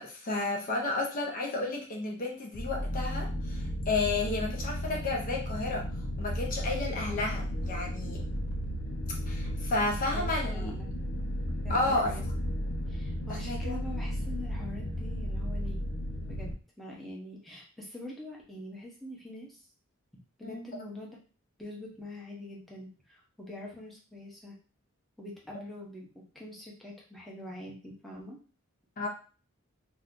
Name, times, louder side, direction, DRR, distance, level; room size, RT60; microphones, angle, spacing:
voice 1, 0.0-5.9 6.2-8.2 9.3-10.7 11.7-12.2 13.5-13.8 20.4-20.7 29.0-29.1, left 2 dB, 40° left, 0 dB, 0.6 m, -32 dB
sound 1, 2.5-16.5, equal, 85° left, 0.6 m, -34 dB
voice 2, 10.1-10.9 11.6-12.3 12.9-15.8 16.3-19.6 20.4-21.2 21.6-24.5 25.2-28.4, left 1 dB, ahead, -3 dB, 0.8 m, -44 dB
2.7 x 2.5 x 3.6 m, 0.36 s
head